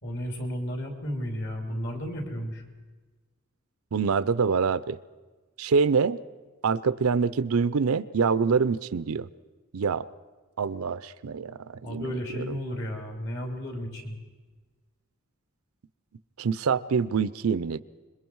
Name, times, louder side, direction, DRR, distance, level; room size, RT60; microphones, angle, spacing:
voice 1, 0.0-2.6 11.8-14.2, equal, 55° left, 2 dB, 3.2 m, -33 dB
voice 2, 3.9-5.0 5.6-6.2 6.6-9.3 9.7-10.1 10.6-12.4 16.4-17.8, right 5 dB, 75° right, 16 dB, 0.5 m, -25 dB
26.5 x 22.0 x 4.7 m, 1.3 s
head